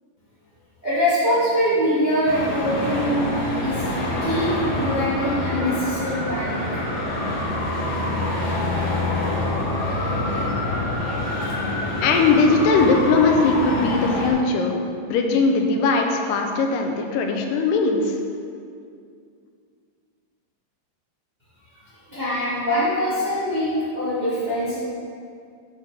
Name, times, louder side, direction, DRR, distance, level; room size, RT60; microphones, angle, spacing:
voice 1, 0.8-3.3 3.6-3.8 4.2-6.8 22.1-24.8, equal, 85° right, -11 dB, 0.4 m, -23 dB
Traffic noise roadway noise, 2.2-14.3, left 1 dB, 55° left, 1.9 m, -26 dB
voice 2, 12.0-14.7 15.1-18.2, left 4 dB, 80° left, 2 dB, 2.0 m, -19 dB
8.0 x 4.0 x 6.0 m, 2.3 s
omnidirectional pair, 4.5 m